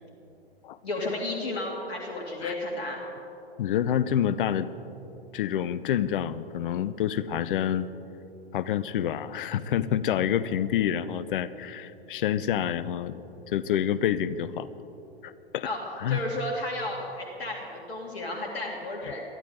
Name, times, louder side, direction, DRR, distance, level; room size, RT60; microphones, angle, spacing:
voice 1, 0.8-3.0 15.6-15.8 16.1-19.2, left 2 dB, 70° left, -1 dB, 2.5 m, -33 dB
voice 2, 3.6-4.7 5.3-7.9 8.5-14.7 15.2-15.7 16.0-16.2, left 10 dB, 55° left, 16 dB, 0.7 m, -28 dB
22.5 x 14.0 x 3.9 m, 3.0 s
figure-of-eight pair, 110°, 32 cm